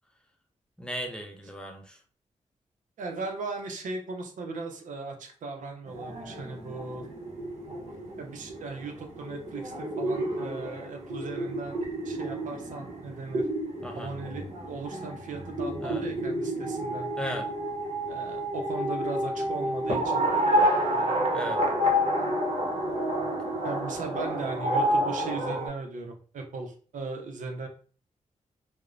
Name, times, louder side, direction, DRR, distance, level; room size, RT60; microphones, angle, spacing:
voice 1, 0.8-2.0 13.8-14.1 15.8-16.0 17.2-17.4 21.3-21.6, left 1 dB, 5° left, 2 dB, 0.5 m, -36 dB
voice 2, 3.0-7.0 8.2-13.5 13.9-17.1 18.1-20.7 23.6-27.7, right 3 dB, 85° right, 3 dB, 0.5 m, -38 dB
sound 1, 5.9-25.7, equal, 55° right, 0.9 m, -30 dB
2.9 x 2.0 x 2.4 m, 0.42 s
cardioid pair, 80°, 13 cm